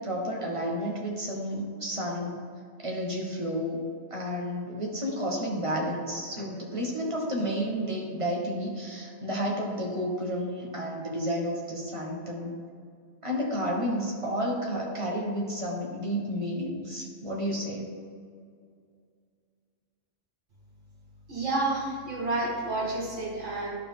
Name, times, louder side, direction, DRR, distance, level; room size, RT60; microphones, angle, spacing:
voice 1, 0.0-2.4 2.8-3.8 4.1-12.6 13.2-17.8, equal, 25° right, -1 dB, 1.3 m, -31 dB
voice 2, 21.3-23.7, right 2 dB, 70° right, -6 dB, 2.5 m, -30 dB
11.0 x 4.7 x 3.7 m, 2.2 s
omnidirectional pair, 1.3 m